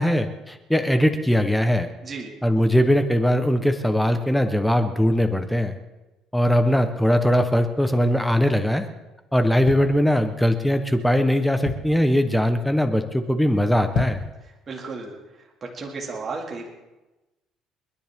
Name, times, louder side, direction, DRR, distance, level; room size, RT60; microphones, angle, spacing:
voice 1, 0.0-1.9 2.4-5.7 6.3-8.9 9.3-14.2, equal, ahead, 7 dB, 0.9 m, -20 dB
sound 1, 9.6-10.6 11.1-11.2 11.4-12.1 12.6-12.9 13.1-13.2 13.8-14.4 14.8-14.9, left 7 dB, 75° left, 1.9 m, -31 dB
voice 2, 14.7-15.2 15.6-16.7, right 4 dB, 30° right, -1 dB, 2.2 m, -33 dB
29.5 x 10.0 x 3.6 m, 1.1 s
cardioid pair, 155°, 0 cm